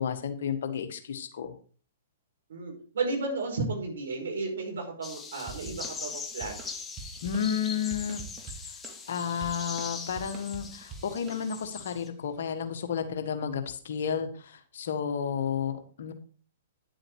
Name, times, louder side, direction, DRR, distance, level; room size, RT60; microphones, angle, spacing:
voice 1, 0.0-1.5 7.2-8.5 9.1-16.1, left 7 dB, 65° left, 7 dB, 1.7 m, -32 dB
voice 2, 2.5-6.6, right 3 dB, 70° right, 1 dB, 5.0 m, -33 dB
sound 1, 5.0-12.1, left 5 dB, 15° left, 1.3 m, -41 dB
sound 2, 5.5-11.9, right 5 dB, 25° right, 2.1 m, -46 dB
10.5 x 7.6 x 4.8 m, 0.41 s
hypercardioid pair, 120°, 0 cm